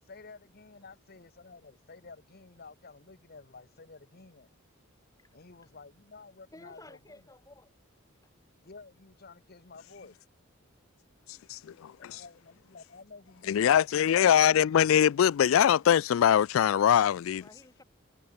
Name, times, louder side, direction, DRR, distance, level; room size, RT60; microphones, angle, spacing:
voice 1, 0.0-4.5 5.3-7.2 8.6-10.1 12.0-14.0, left 4 dB, 50° left, 1.3 m, -52 dB
voice 2, 6.5-7.7 8.2-8.3 11.2-11.3 11.7-12.0 17.4-17.8, left 2 dB, 15° left, 4.6 m, -54 dB
voice 3, 11.3-12.2 13.5-17.4, left 9 dB, 75° left, 0.3 m, -23 dB
head